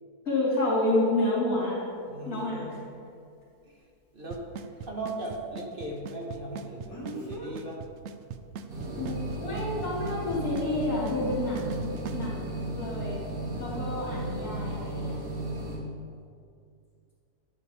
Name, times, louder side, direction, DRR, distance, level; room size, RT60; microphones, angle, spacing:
voice 1, 0.2-1.8 2.2-2.6 8.9-13.2 13.6-15.2, left 2 dB, 60° left, -10 dB, 3.2 m, -29 dB
Speech, 1.6-1.7 6.9-7.5 8.8-9.0, right 1 dB, 10° left, 1.6 m, -40 dB
voice 2, 2.0-2.8 3.6-3.8 4.1-4.5 4.8-7.8 8.8-9.2 13.5-13.8, right 1 dB, 35° right, -2 dB, 1.4 m, -38 dB
Drum kit / Snare drum / Bass drum, 4.3-12.3, right 7 dB, 80° right, 0.6 m, -40 dB
sound 1, 8.7-15.8, right 1 dB, 60° right, 2.1 m, -35 dB
10.5 x 8.4 x 3.4 m, 2.4 s
omnidirectional pair, 1.7 m